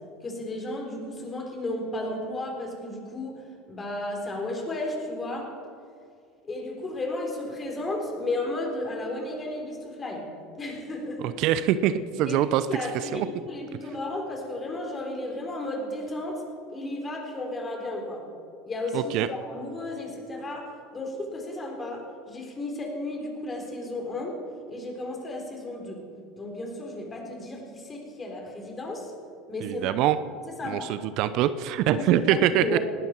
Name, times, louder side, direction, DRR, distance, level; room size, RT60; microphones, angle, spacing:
voice 1, 0.2-3.4 3.7-5.6 6.4-10.3 10.6-11.4 12.3-16.4 16.7-18.3 18.6-24.4 24.7-26.1 26.3-29.1 29.5-30.1 30.5-31.0 31.9-32.8, left 2 dB, 25° left, 1 dB, 3.8 m, -33 dB
voice 2, 11.4-12.6 13.1-13.3 18.9-19.3 29.6-30.2 30.6-32.8, right 11 dB, 60° right, 14 dB, 0.6 m, -24 dB
19.0 x 12.0 x 4.5 m, 2.4 s
hypercardioid pair, 85°, 0 cm